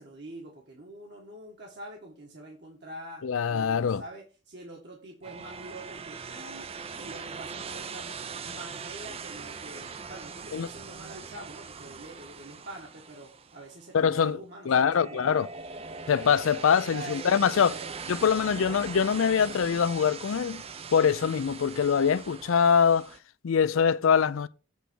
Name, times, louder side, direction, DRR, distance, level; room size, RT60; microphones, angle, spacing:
voice 1, 0.0-3.2 3.5-6.7 6.9-8.1 8.4-15.5 16.9-17.9, right 1 dB, 55° right, 1.6 m, -45 dB
voice 2, 3.2-4.0 10.5-10.7 13.9-14.4 14.7-15.5 16.1-17.7 18.1-20.6 20.9-23.1 23.4-24.5, left 7 dB, 80° left, 0.4 m, -23 dB
sound 1, 5.2-14.1 14.8-23.2, right 5 dB, 30° right, 0.4 m, -41 dB
8.0 x 3.4 x 6.2 m
head